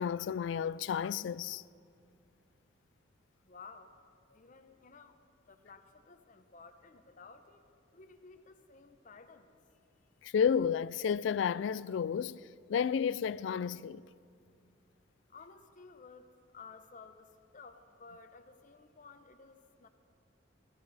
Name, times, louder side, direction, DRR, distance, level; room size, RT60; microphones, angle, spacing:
voice 1, 0.0-1.6 10.2-12.4 12.7-14.0, left 7 dB, 65° left, 0.3 m, -31 dB
voice 2, 3.4-4.0 4.3-7.7 7.9-9.8 15.3-19.9, left 4 dB, 45° left, 0.8 m, -55 dB
19.0 x 15.5 x 4.1 m
head